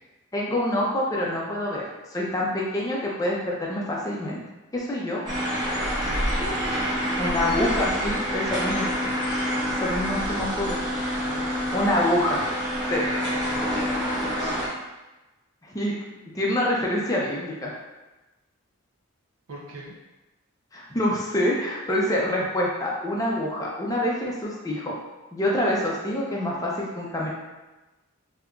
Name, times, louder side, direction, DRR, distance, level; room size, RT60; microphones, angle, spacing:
voice 1, 0.3-1.8 2.1-4.4 4.7-5.2 7.2-8.9 9.8-10.8 11.7-12.4 12.9-13.1 15.6-15.9 16.3-17.7 20.7-24.9 25.3-27.3, left 1 dB, 15° left, -4 dB, 0.5 m, -26 dB
sound 1, 5.3-14.7, equal, 20° right, 0.8 m, -27 dB
voice 2, 6.1-6.7 11.2-11.5 12.9-13.6 19.5-19.9, right 2 dB, 70° right, -3 dB, 0.5 m, -38 dB
3.6 x 2.8 x 2.3 m, 1.1 s
head